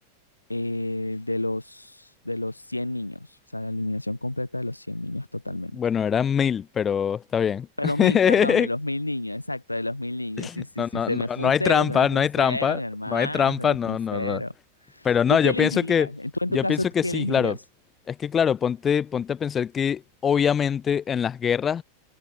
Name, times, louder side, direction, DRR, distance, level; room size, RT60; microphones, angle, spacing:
voice 1, 0.5-3.3 3.5-5.8 7.8-14.5 14.9-17.6, left 1 dB, 85° left, 0.6 m, -30 dB
voice 2, 5.7-8.7 10.4-12.8 13.1-14.4 15.0-16.1 16.5-17.6 18.1-21.8, left 8 dB, 20° left, 0.4 m, -23 dB
figure-of-eight pair, 90°, 0 cm